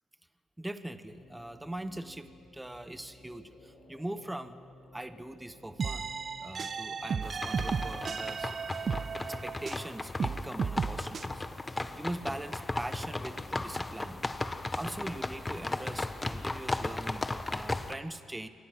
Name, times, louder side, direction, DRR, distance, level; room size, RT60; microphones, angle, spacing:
voice 1, 0.6-4.6 4.9-8.5 9.2-11.5 12.0-14.2 14.7-18.5, right 1 dB, 10° right, 11 dB, 1.0 m, -41 dB
sound 1, 1.1-15.5, left 1 dB, 70° left, 6.2 m, -56 dB
sound 2, 5.8-9.9 10.2-11.3, right 6 dB, 45° right, 0.6 m, -34 dB
sound 3, 7.2-17.9, left 2 dB, 15° left, 1.1 m, -36 dB
28.0 x 24.0 x 6.1 m, 2.2 s
cardioid pair, 90°, 0 cm